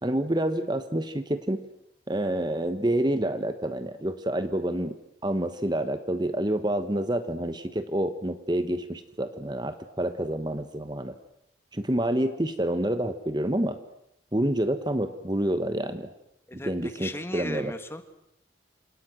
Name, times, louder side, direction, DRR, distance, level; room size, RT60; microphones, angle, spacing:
voice 1, 0.0-1.6 2.1-5.0 5.2-11.1 11.7-13.8 14.3-16.1 16.5-17.7, right 1 dB, 25° right, 10 dB, 1.1 m, -28 dB
voice 2, 16.5-18.0, left 1 dB, 15° left, 9 dB, 1.7 m, -37 dB
29.0 x 27.0 x 6.2 m, 0.79 s
head